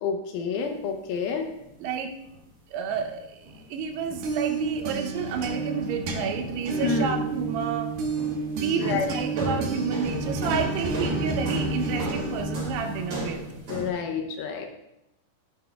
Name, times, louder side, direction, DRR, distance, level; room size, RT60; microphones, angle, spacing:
voice 1, 0.0-1.5 6.8-7.2 8.8-9.1 13.7-14.7, left 6 dB, 75° left, 4 dB, 2.4 m, -29 dB
sound 1, 1.6-1.7 2.2-2.4 2.9-3.2 3.4-3.6 4.0-6.1 6.3-7.8 8.2-8.5 8.8-13.9, equal, 40° right, 3.6 m, -36 dB
voice 2, 1.8-2.2 2.7-7.9 8.5-13.4, right 6 dB, 85° right, 5 dB, 2.8 m, -30 dB
sound 2, 3.9-13.6, right 3 dB, 65° right, 2.8 m, -30 dB
12.5 x 9.1 x 2.3 m, 0.89 s
omnidirectional pair, 4.8 m